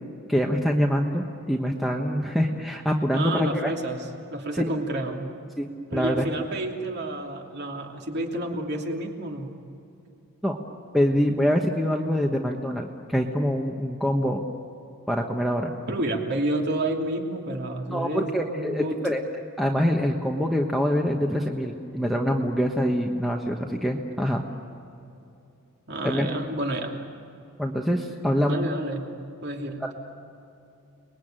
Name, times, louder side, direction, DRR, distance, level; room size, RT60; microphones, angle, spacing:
voice 1, 0.3-3.7 4.5-4.7 5.6-6.2 10.4-10.6 10.9-14.4 15.1-15.7 17.9-19.2 19.6-24.4 26.0-26.3 27.6-28.6, equal, ahead, 1 dB, 1.2 m, -25 dB
voice 2, 3.1-5.3 5.9-9.5 15.9-19.0 25.9-26.9 28.4-29.1 29.4-29.8, right 1 dB, 50° right, 1 dB, 2.9 m, -30 dB
30.0 x 21.0 x 9.0 m, 2.8 s
head